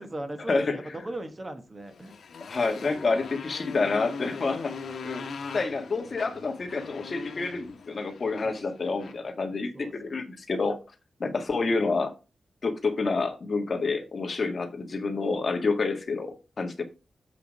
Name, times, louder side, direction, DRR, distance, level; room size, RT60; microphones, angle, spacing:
voice 1, 0.0-2.1 8.4-9.2 9.7-10.1, right 1 dB, 25° right, 7 dB, 1.3 m, -38 dB
Motorcycle, 1.9-9.3, left 5 dB, 85° left, 1.1 m, -40 dB
voice 2, 2.5-4.7 5.0-5.2 5.5-10.8 11.2-12.1 12.6-16.8, left 3 dB, 45° left, 5 dB, 1.6 m, -28 dB
8.3 x 5.0 x 5.2 m, 0.29 s
wide cardioid pair, 140°, 0 cm